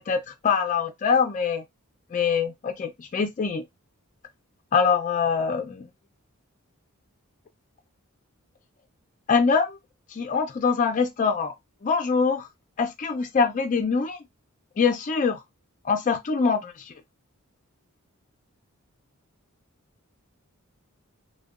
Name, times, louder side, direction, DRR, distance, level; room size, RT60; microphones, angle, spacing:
voice 1, 0.1-1.6 2.1-3.6 4.7-5.9 9.3-9.8 10.1-11.5 11.8-12.5 12.8-14.2 14.8-15.4 15.8-16.9, left 5 dB, 35° left, 0.4 m, -24 dB
2.7 x 2.1 x 2.3 m
head